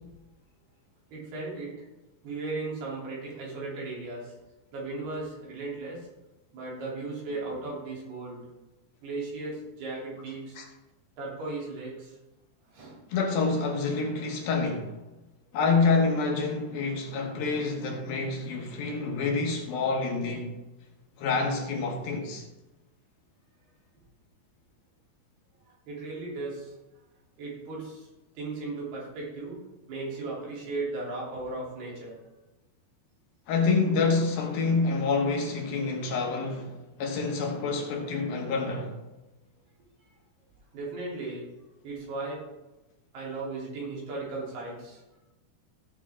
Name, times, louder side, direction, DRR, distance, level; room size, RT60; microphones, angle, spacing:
voice 1, 1.1-1.7 2.2-4.3 4.7-6.1 6.5-8.5 9.0-10.6 11.2-12.2 12.7-13.0 25.9-26.8 27.4-28.1 28.4-29.6 29.9-32.2 40.7-41.5 41.8-42.5 43.1-45.0, right 3 dB, 75° right, 5.4 m, -36 dB
voice 2, 13.1-14.9 15.5-20.6 21.2-22.4 33.5-38.9, left 4 dB, 70° left, 3.0 m, -27 dB
16.5 x 7.1 x 3.7 m
omnidirectional pair, 4.7 m